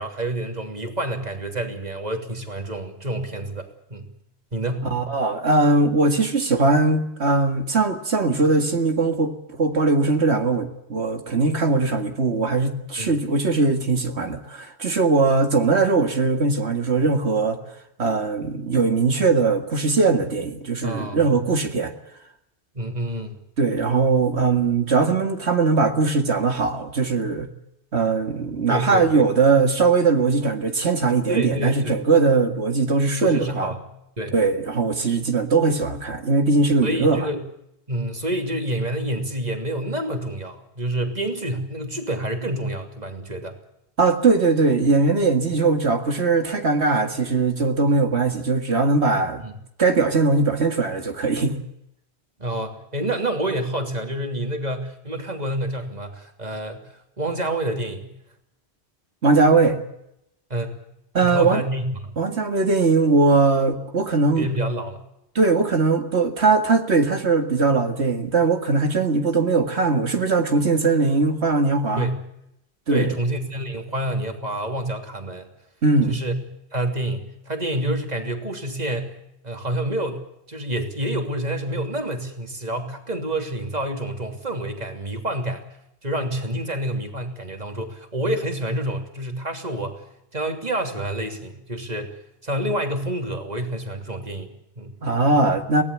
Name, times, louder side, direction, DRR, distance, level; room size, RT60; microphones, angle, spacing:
voice 1, 0.0-4.1 4.5-4.9 13.0-13.1 20.8-21.3 22.7-23.4 28.7-29.2 31.3-32.0 33.2-33.8 34.2-34.3 36.8-37.4 37.9-43.6 49.4-49.6 52.4-56.9 57.2-58.1 60.5-60.8 61.2-62.2 64.4-65.0 72.0-72.2 72.9-75.5 76.1-76.4 76.7-79.1 79.4-85.6 86.0-90.0 90.3-92.2 92.4-94.9, right 1 dB, 40° right, 3.1 m, -28 dB
voice 2, 4.9-17.6 18.0-21.9 23.6-27.5 27.9-33.7 34.3-37.3 44.0-49.4 49.8-51.6 59.2-59.8 61.1-61.6 62.2-64.5 65.4-72.1 72.9-73.2 75.8-76.2 95.0-95.8, right 3 dB, 75° right, 2.2 m, -20 dB
23.5 x 18.0 x 8.4 m
omnidirectional pair, 1.1 m